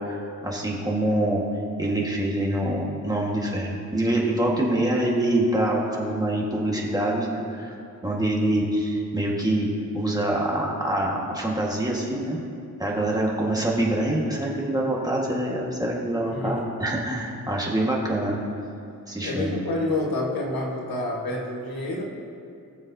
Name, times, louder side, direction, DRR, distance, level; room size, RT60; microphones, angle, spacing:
voice 1, 0.0-1.4 1.8-7.7 8.0-12.4 12.8-18.4 19.1-19.5, right 1 dB, 10° right, -3 dB, 1.5 m, -25 dB
voice 2, 16.3-16.7 19.2-22.0, left 2 dB, 85° left, -1 dB, 1.6 m, -28 dB
20.5 x 7.0 x 2.7 m, 2.4 s
wide cardioid pair, 125°, 35 cm